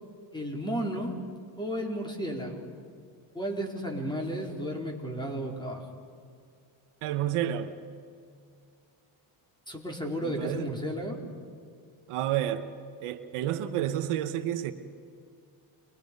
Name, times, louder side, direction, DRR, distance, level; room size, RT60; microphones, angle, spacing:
voice 1, 0.3-1.2 1.6-2.7 3.3-5.8 9.7-11.2, equal, 10° left, 0 dB, 4.5 m, -33 dB
voice 2, 7.0-7.7 10.2-10.7 12.1-12.7 13.0-14.7, right 11 dB, 90° right, 9 dB, 1.3 m, -30 dB
29.5 x 22.5 x 5.4 m, 2.2 s
cardioid pair, 95°, 50 cm